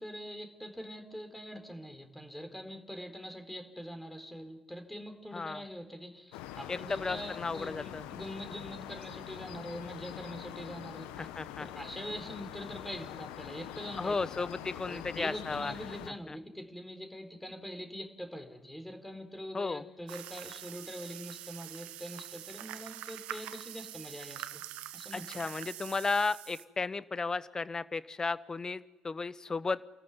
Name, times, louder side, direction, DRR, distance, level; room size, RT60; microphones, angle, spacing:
voice 1, 0.0-11.3 11.7-14.1 14.9-24.6 24.9-25.2, equal, 5° left, 7 dB, 4.3 m, -43 dB
sound 1, 6.3-16.1, left 12 dB, 75° left, 1.1 m, -44 dB
voice 2, 6.7-8.1 11.2-11.7 14.0-15.7 16.3-16.4 19.5-19.8 25.1-29.8, left 4 dB, 30° left, 17 dB, 1.0 m, -34 dB
sound 2, 20.1-26.6, right 14 dB, 75° right, 1.1 m, -45 dB
29.0 x 14.0 x 9.7 m, 1.2 s
hypercardioid pair, 45°, 2 cm